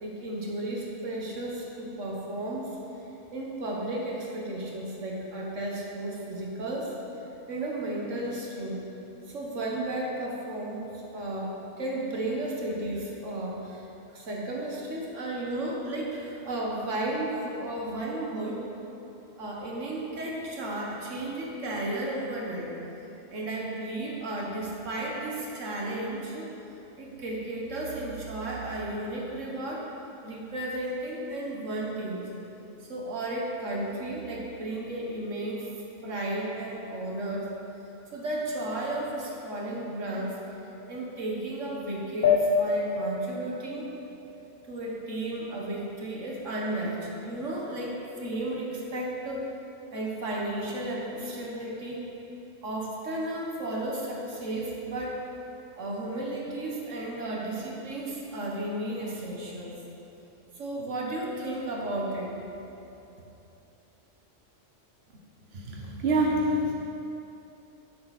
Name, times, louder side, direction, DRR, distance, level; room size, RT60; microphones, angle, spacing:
voice 1, 0.0-2.7 3.3-6.9 7.5-8.8 9.3-13.8 14.1-18.7 19.4-22.7 23.3-26.5 27.0-29.9 30.2-32.2 32.9-35.7 36.0-37.5 38.1-40.4 40.9-43.9 44.7-49.5 49.9-52.1 52.6-55.2 55.8-59.8 60.6-62.3, right 1 dB, 90° right, -2 dB, 1.9 m, -33 dB
sound 1, 42.2-45.2, left 5 dB, 55° left, 0.8 m, -27 dB
voice 2, 65.5-66.7, right 1 dB, 55° right, -2 dB, 1.3 m, -26 dB
12.5 x 7.8 x 4.3 m, 2.9 s
omnidirectional pair, 1.2 m